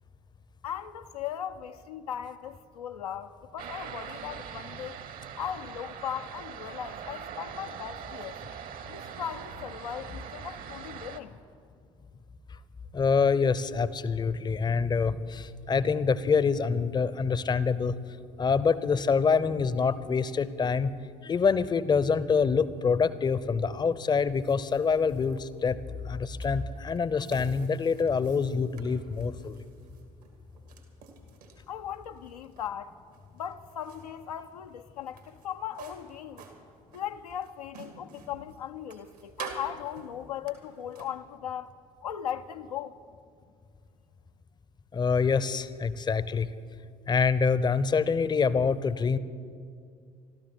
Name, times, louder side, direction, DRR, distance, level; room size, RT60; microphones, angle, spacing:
voice 1, 0.6-5.0 5.4-8.4 8.9-11.4 31.7-32.9 33.3-36.4 36.9-41.7 42.0-43.0, left 9 dB, 75° left, 0.5 m, -38 dB
sound 1, 3.6-11.2, right 8 dB, 45° right, 1.0 m, -42 dB
voice 2, 12.9-17.9 18.4-20.9 21.2-25.8 26.1-29.6 44.9-46.5 47.1-49.2, left 5 dB, 20° left, 0.7 m, -26 dB
sound 2, 23.9-41.1, right 6 dB, 75° right, 2.0 m, -50 dB
25.5 x 13.0 x 4.1 m
figure-of-eight pair, 55°, 20 cm